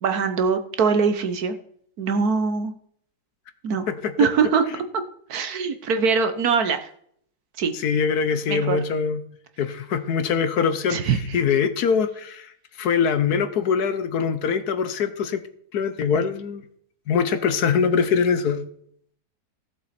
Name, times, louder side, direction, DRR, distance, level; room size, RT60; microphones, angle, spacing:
voice 1, 0.0-1.5 2.0-2.7 3.6-3.9 4.2-4.7 5.3-6.8 7.6-7.7 8.5-8.8 10.9-11.4, right 5 dB, 60° right, 8 dB, 1.4 m, -22 dB
voice 2, 3.9-4.3 7.7-9.2 9.6-15.4 15.7-16.6 17.1-18.6, left 6 dB, 65° left, 11 dB, 1.2 m, -23 dB
16.0 x 7.4 x 4.2 m, 0.65 s
omnidirectional pair, 1.9 m